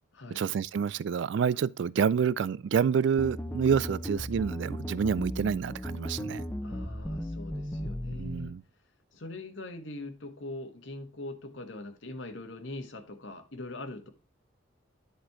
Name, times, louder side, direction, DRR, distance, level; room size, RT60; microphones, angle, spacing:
voice 1, 0.4-6.4 8.2-8.6, right 7 dB, 60° right, 0.3 m, -28 dB
sound 1, 3.2-8.5, equal, 10° left, 0.7 m, -36 dB
voice 2, 6.6-8.5 9.1-14.1, left 2 dB, 70° left, 1.4 m, -42 dB
10.0 x 4.3 x 4.6 m
head